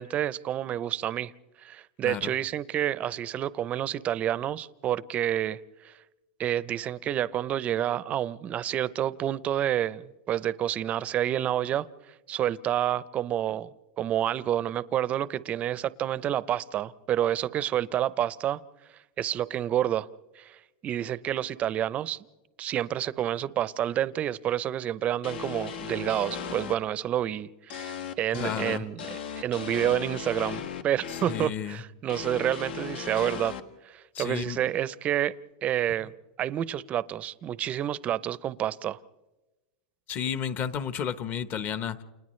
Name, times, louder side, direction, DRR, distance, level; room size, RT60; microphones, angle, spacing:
voice 1, 0.0-1.3 1.6-5.6 5.8-5.9 6.4-10.0 10.3-11.9 12.3-13.7 14.0-18.6 19.2-20.1 20.4-22.2 22.6-33.5 33.8-35.3 35.6-36.1 36.4-39.0, right 11 dB, 25° right, 18 dB, 0.6 m, -29 dB
voice 2, 2.0-2.3 28.3-28.9 31.1-31.8 34.1-34.6 36.0-36.1 40.1-42.0, left 8 dB, 30° left, 14 dB, 1.0 m, -32 dB
sound 1, 25.2-26.7 27.7-31.5 32.1-33.6, left 7 dB, 80° left, 1.6 m, -36 dB
30.0 x 29.0 x 3.2 m, 1.1 s
supercardioid pair, 145°, 5 cm